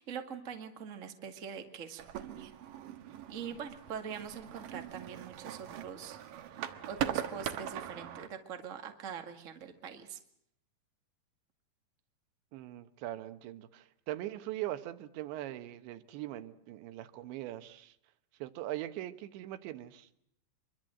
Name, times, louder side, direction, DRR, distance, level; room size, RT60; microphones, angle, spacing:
voice 1, 0.0-2.5 3.3-10.2, right 7 dB, 45° right, 6 dB, 1.0 m, -44 dB
sound 1, 2.0-8.3, right 10 dB, 65° right, 2.5 m, -40 dB
voice 2, 12.5-18.0 18.4-20.1, right 14 dB, 80° right, 11 dB, 3.4 m, -41 dB
25.5 x 23.0 x 7.7 m, 0.71 s
omnidirectional pair, 5.1 m